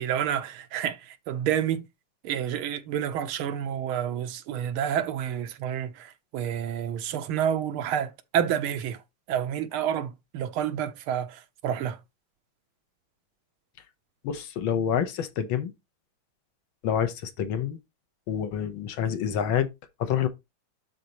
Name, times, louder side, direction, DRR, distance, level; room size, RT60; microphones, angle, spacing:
voice 1, 0.0-1.9 2.2-9.0 9.3-12.0, right 9 dB, 80° right, 1.6 m, -29 dB
voice 2, 14.2-15.7 16.8-17.8 18.3-19.7 20.0-20.3, left 9 dB, 75° left, 1.6 m, -27 dB
12.0 x 4.1 x 2.9 m
omnidirectional pair, 2.3 m